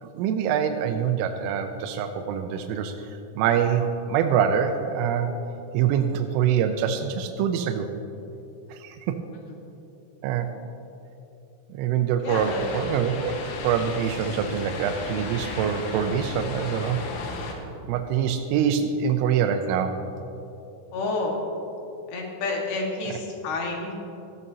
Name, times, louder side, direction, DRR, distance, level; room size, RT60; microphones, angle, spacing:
voice 1, 0.0-5.3 5.7-7.9 8.7-9.2 10.2-10.5 11.7-13.4 13.6-17.0 17.9-20.1, right 8 dB, 85° right, 5 dB, 3.0 m, -25 dB
voice 2, 12.2-12.7 14.3-14.4 20.9-21.4 22.1-23.9, left 3 dB, 65° left, -1 dB, 3.3 m, -29 dB
sound 1, 12.3-17.5, left 3 dB, 85° left, 3.9 m, -35 dB
17.5 x 14.0 x 2.8 m, 2.8 s
omnidirectional pair, 5.6 m